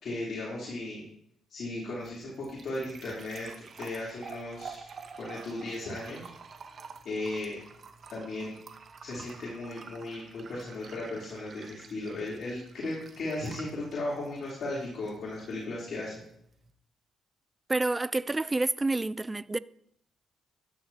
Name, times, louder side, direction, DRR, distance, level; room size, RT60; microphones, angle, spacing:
voice 1, 0.0-1.0 1.5-3.5 3.8-4.9 5.2-6.3 7.1-7.6 8.1-8.6 9.0-16.1, left 2 dB, 60° left, 3.4 m, -36 dB
sound 1, 1.7-16.7, right 5 dB, 50° right, 1.1 m, -49 dB
voice 2, 17.7-19.6, right 2 dB, 20° right, 0.4 m, -28 dB
13.0 x 9.9 x 2.9 m
cardioid pair, 90°, 0 cm